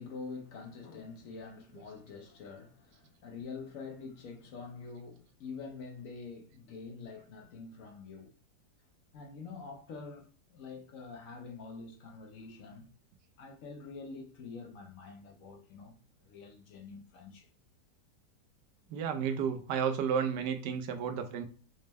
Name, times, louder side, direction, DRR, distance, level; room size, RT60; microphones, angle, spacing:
voice 1, 0.0-8.4 9.1-12.9 13.4-17.5, left 4 dB, 65° left, 0.9 m, -46 dB
voice 2, 18.9-21.5, right 7 dB, 80° right, 1.2 m, -32 dB
5.1 x 2.0 x 3.4 m
omnidirectional pair, 1.8 m